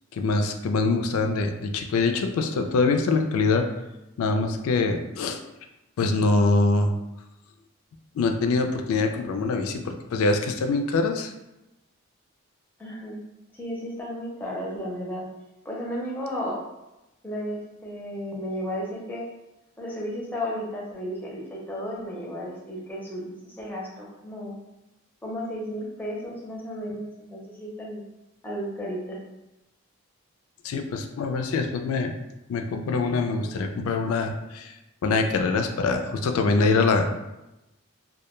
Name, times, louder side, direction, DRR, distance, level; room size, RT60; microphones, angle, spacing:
voice 1, 0.1-3.7 4.2-5.4 6.0-6.9 8.2-11.3 30.6-32.1 32.5-34.7 35.0-37.1, left 3 dB, 80° left, 6 dB, 0.3 m, -24 dB
voice 2, 12.8-13.2 13.5-15.2 15.6-16.6 17.2-19.2 19.8-24.6 25.2-28.0 28.4-29.2, equal, 10° left, -4 dB, 0.5 m, -33 dB
2.2 x 2.1 x 3.0 m, 0.95 s
head